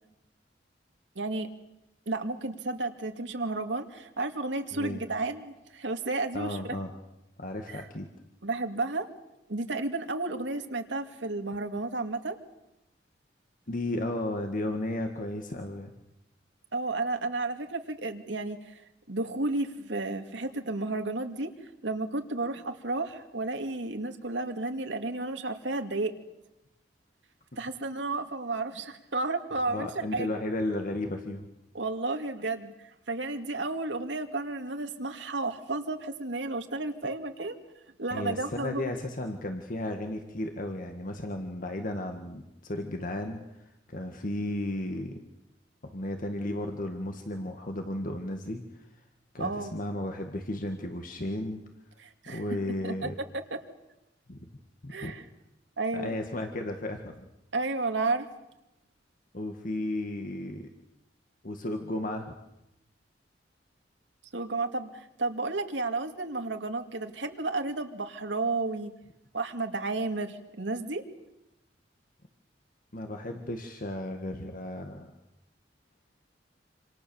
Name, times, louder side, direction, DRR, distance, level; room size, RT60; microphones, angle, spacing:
voice 1, 1.2-1.5 2.1-6.8 7.7-7.8 8.4-9.1 9.5-12.4 16.7-18.7 19.1-21.5 21.8-26.1 27.6-30.3 31.7-32.7 33.1-37.6 38.0-38.8 49.4-49.8 52.0-52.4 52.8-53.1 54.9-55.3 55.8-56.2 57.5-58.3 64.3-68.9 69.3-71.0, right 3 dB, 80° right, 6 dB, 2.4 m, -32 dB
voice 2, 6.3-7.0 7.4-8.1 13.7-15.9 29.7-31.5 38.1-45.2 45.8-48.9 49.3-51.6 52.3-53.1 54.3-54.5 54.8-55.1 55.9-57.3 59.3-60.7 61.4-62.3 72.9-75.1, left 1 dB, 50° left, 4 dB, 1.9 m, -34 dB
27.5 x 27.0 x 7.2 m, 0.90 s
head